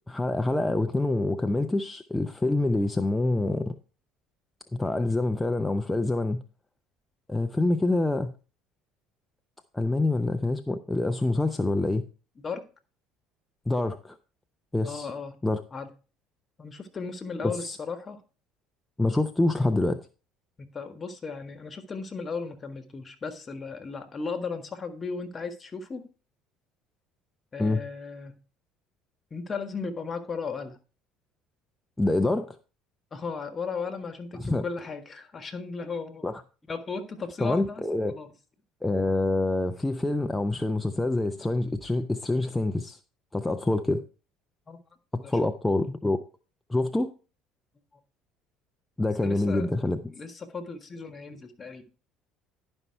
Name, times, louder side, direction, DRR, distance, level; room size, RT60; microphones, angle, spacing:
voice 1, 0.1-3.7 4.7-6.4 7.3-8.3 9.7-12.0 13.7-14.2 14.7-15.1 15.4-15.6 17.4-17.8 19.0-20.0 27.6-27.8 32.0-32.6 34.3-34.6 36.2-36.4 37.4-38.1 38.8-43.0 43.3-44.0 45.1-46.2 46.7-47.1 49.0-50.0, left 2 dB, 10° left, 0.6 m, -26 dB
voice 2, 14.8-15.4 15.7-15.9 16.6-18.2 20.7-26.1 27.5-28.4 29.3-30.8 33.1-36.3 36.7-37.8 38.1-38.3 44.7-44.8 45.1-45.3 49.2-49.7 50.1-51.8, left 4 dB, 35° left, 1.5 m, -36 dB
11.0 x 5.5 x 4.5 m
hypercardioid pair, 75°, 0 cm